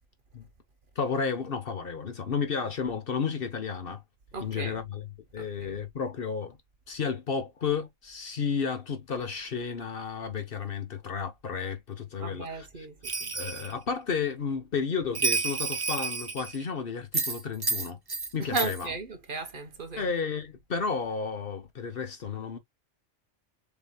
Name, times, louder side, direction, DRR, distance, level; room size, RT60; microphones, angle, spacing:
voice 1, 1.0-4.0 4.4-5.1 5.3-6.6 6.9-12.9 13.3-18.0 18.3-18.9 20.0-22.6, left 5 dB, 50° left, 1.0 m, -32 dB
voice 2, 4.3-4.8 5.4-5.8 12.2-13.3 18.4-20.1, right 3 dB, 45° right, 1.1 m, -35 dB
Bell, 13.0-13.7 15.1-16.6 17.1-18.3 18.5-18.9, right 4 dB, 25° right, 0.5 m, -30 dB
6.9 x 2.9 x 2.2 m
omnidirectional pair, 1.3 m